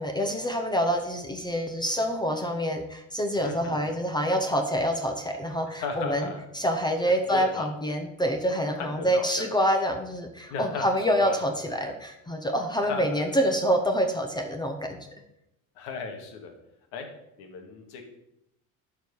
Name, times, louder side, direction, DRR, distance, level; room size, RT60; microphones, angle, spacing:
voice 1, 0.0-6.3 6.5-15.0, equal, 10° left, 5 dB, 0.7 m, -26 dB
voice 2, 3.4-3.9 5.8-6.5 7.3-7.7 8.8-9.4 10.5-10.9 11.2-11.6 12.9-13.2 15.8-16.5 16.9-17.1 17.4-18.0, left 5 dB, 80° left, 4 dB, 2.0 m, -36 dB
11.5 x 4.7 x 5.4 m, 0.83 s
cardioid pair, 150°, 38 cm